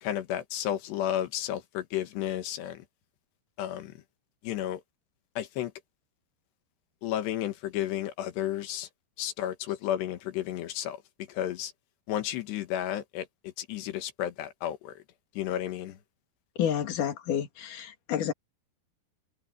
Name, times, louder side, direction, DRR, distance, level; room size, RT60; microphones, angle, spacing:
voice 1, 0.0-2.9 3.6-4.0 4.4-4.8 5.4-5.7 7.0-8.9 9.2-11.0 11.3-11.7 12.1-15.0 15.4-16.0, left 11 dB, 85° left, 3.7 m, -32 dB
voice 2, 16.6-18.3, left 9 dB, 55° left, 3.4 m, -29 dB
omnidirectional pair, 4.7 m